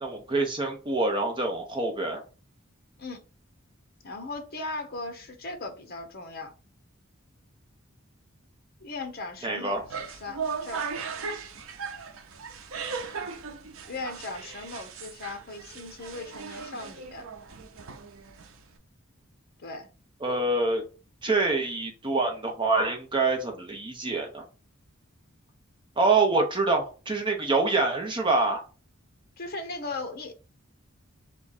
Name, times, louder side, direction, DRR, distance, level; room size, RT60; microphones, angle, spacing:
voice 1, 0.0-2.2 9.4-9.8 20.2-20.8 21.2-24.4 26.0-28.6, right 3 dB, 25° right, 1.0 m, -26 dB
voice 2, 4.0-6.5 8.8-10.9 13.9-17.2 19.6-19.9 29.4-30.3, left 3 dB, 50° left, 1.0 m, -38 dB
sound 1, 9.7-18.8, right 5 dB, 85° right, 0.6 m, -38 dB
3.6 x 3.0 x 4.0 m
head